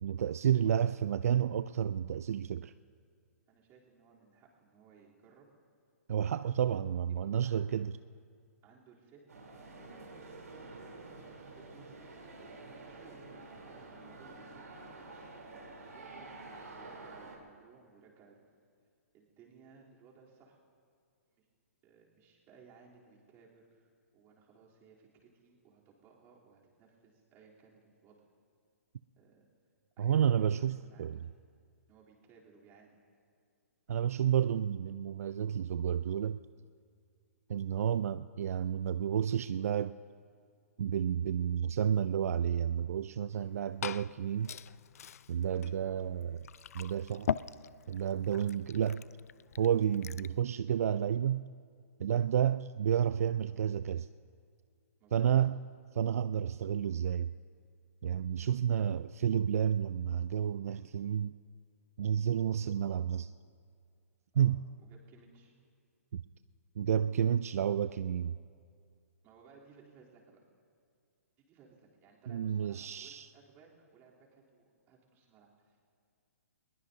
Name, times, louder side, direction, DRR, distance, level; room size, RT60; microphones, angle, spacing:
voice 1, 0.0-2.7 6.1-7.9 30.0-31.2 33.9-36.4 37.5-40.0 40.8-44.5 45.3-46.5 46.7-47.3 47.9-49.0 49.6-51.4 52.0-54.1 55.1-55.6 55.9-57.3 58.0-61.3 62.0-63.3 64.3-64.6 66.1-66.2 66.8-68.3 72.3-73.3, right 9 dB, 65° right, 0.3 m, -31 dB
voice 2, 3.5-5.5 6.4-6.5 7.2-7.9 8.6-9.3 9.9-10.6 11.0-12.1 12.4-14.9 15.9-18.5 19.1-20.6 21.4-21.5 21.8-28.2 29.2-29.5 30.0-31.3 31.9-33.0 55.0-55.3 64.3-65.5 69.2-70.4 71.4-75.8, right 5 dB, 25° right, 3.3 m, -61 dB
sound 1, 9.3-17.4, right 3 dB, 80° right, 3.5 m, -49 dB
Glass / Fill (with liquid), 43.3-50.4, left 8 dB, 70° left, 0.4 m, -42 dB
21.0 x 20.5 x 2.8 m
hypercardioid pair, 135°, 9 cm